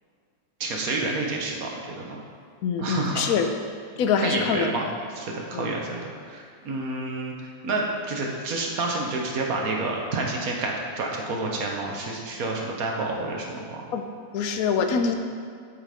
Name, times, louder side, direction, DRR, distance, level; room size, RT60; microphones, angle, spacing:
voice 1, 0.6-2.2 2.8-3.3 4.2-4.9 5.1-7.3 7.6-13.8, right 3 dB, 55° right, 0 dB, 1.5 m, -29 dB
voice 2, 2.6-3.5 4.0-4.8 5.5-5.7 13.9-14.1 14.3-15.2, left 6 dB, 65° left, 6 dB, 1.0 m, -24 dB
7.9 x 5.9 x 5.0 m, 2.2 s
omnidirectional pair, 1.9 m